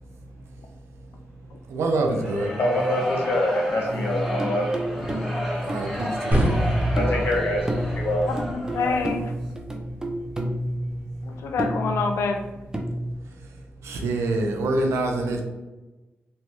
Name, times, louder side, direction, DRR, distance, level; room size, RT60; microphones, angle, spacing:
voice 1, 0.0-2.5 5.3-7.0 9.6-10.5 10.9-11.5 12.8-12.9 13.2-15.4, right 2 dB, 85° right, 2 dB, 0.5 m, -29 dB
sound 1, 2.1-9.3, left 1 dB, ahead, 1.2 m, -33 dB
voice 2, 2.6-4.7 7.0-7.7 7.9-8.2, left 1 dB, 60° left, -2 dB, 1.0 m, -24 dB
sound 2, 3.9-13.1, equal, 15° right, 0.5 m, -30 dB
sound 3, 6.3-12.4, right 1 dB, 35° right, 1.0 m, -30 dB
voice 3, 8.3-9.3 11.2-12.5, left 4 dB, 80° left, 5 dB, 0.4 m, -27 dB
3.1 x 2.2 x 3.0 m, 1.1 s
cardioid pair, 60°, 5 cm